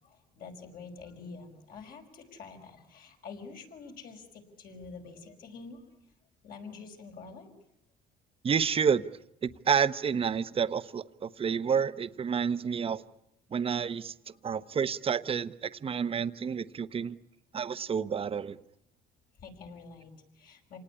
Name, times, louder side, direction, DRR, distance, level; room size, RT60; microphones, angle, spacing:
voice 1, 0.0-5.8 6.4-7.5 16.0-16.1 19.4-20.8, left 4 dB, 60° left, 5.5 m, -47 dB
voice 2, 8.4-9.0 9.4-13.0 13.5-14.1 14.4-17.2 17.5-18.6, right 7 dB, 35° right, 1.0 m, -29 dB
28.0 x 19.0 x 9.8 m
cardioid pair, 110°, 17 cm